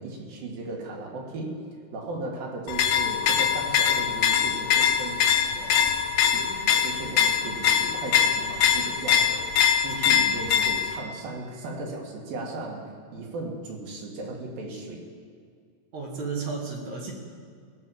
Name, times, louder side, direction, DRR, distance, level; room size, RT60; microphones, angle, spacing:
voice 1, 0.0-1.6 1.9-5.9 6.2-15.0, right 2 dB, 85° right, 0 dB, 3.5 m, -37 dB
sound 1, 2.7-11.0, left 8 dB, 80° left, 2.3 m, -23 dB
voice 2, 15.9-17.1, right 4 dB, 60° right, -2 dB, 2.9 m, -32 dB
18.0 x 6.1 x 7.3 m, 2.1 s
omnidirectional pair, 4.0 m